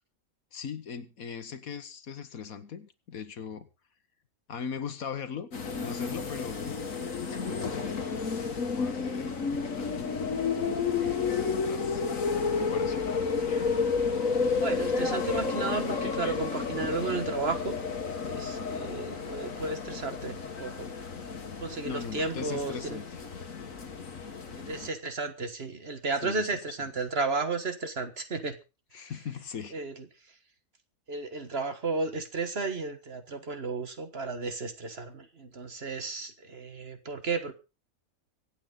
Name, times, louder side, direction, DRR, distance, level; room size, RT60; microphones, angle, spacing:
voice 1, 0.5-3.7 4.5-5.5 5.8-6.8 7.3-10.1 10.6-12.0 12.4-13.1 21.8-23.1 26.2-26.6 28.9-29.8, left 6 dB, 85° left, 11 dB, 1.8 m, -40 dB
sound 1, 5.5-24.9, left 5 dB, 70° left, 1.8 m, -31 dB
voice 2, 14.6-17.8 18.2-20.9 21.6-23.0 24.5-28.6 29.0-29.1 29.7-30.0 31.1-37.5, right 3 dB, 45° right, 9 dB, 1.7 m, -33 dB
24.5 x 8.6 x 4.0 m, 0.31 s
omnidirectional pair, 1.4 m